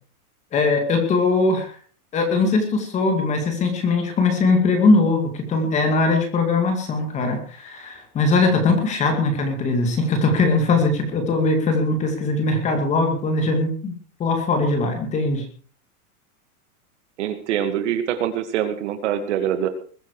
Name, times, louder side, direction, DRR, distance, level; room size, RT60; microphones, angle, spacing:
voice 1, 0.5-1.8 2.1-15.4, left 3 dB, 15° left, 5 dB, 2.4 m, -20 dB
voice 2, 17.2-19.7, right 10 dB, 50° right, 8 dB, 2.3 m, -24 dB
21.5 x 10.0 x 4.9 m, 0.43 s
supercardioid pair, 175°, 44 cm